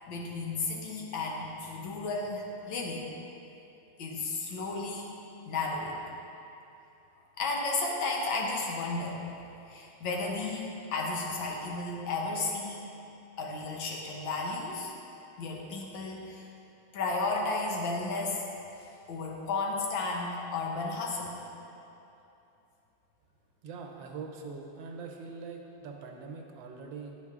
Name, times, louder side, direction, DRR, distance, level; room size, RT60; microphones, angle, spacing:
voice 1, 0.0-3.1 4.0-6.0 7.4-9.2 9.7-12.8 13.4-14.9 15.4-16.5 16.9-18.5 18.8-21.4, left 3 dB, 80° left, -1 dB, 1.7 m, -33 dB
voice 2, 23.6-27.2, right 4 dB, 80° right, 2 dB, 1.4 m, -43 dB
10.0 x 4.6 x 3.6 m, 2.9 s
omnidirectional pair, 2.1 m